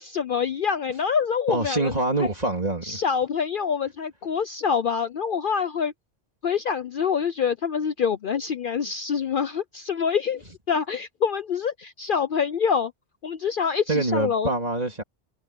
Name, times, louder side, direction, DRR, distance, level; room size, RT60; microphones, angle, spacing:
voice 1, 0.0-1.9 2.2-2.3 2.8-5.9 6.4-12.9 13.2-14.5, left 6 dB, 55° left, 0.7 m, -26 dB
voice 2, 1.5-3.0 13.9-15.0, right 2 dB, 35° right, 3.4 m, -25 dB
omnidirectional pair, 1.2 m